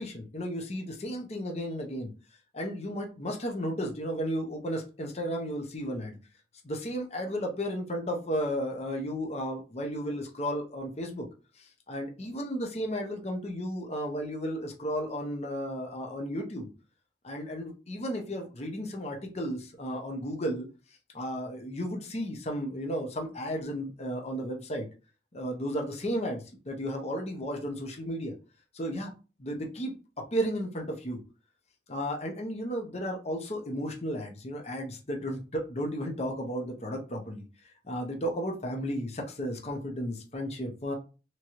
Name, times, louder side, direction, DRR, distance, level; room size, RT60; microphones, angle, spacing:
voice 1, 0.0-2.1 2.5-6.2 6.6-11.3 11.6-16.7 17.2-20.7 21.1-24.9 25.3-28.3 28.7-29.1 29.4-31.2 31.9-37.4 37.8-40.9, equal, 40° left, 2 dB, 0.8 m, -34 dB
3.7 x 3.0 x 3.0 m, 0.32 s
head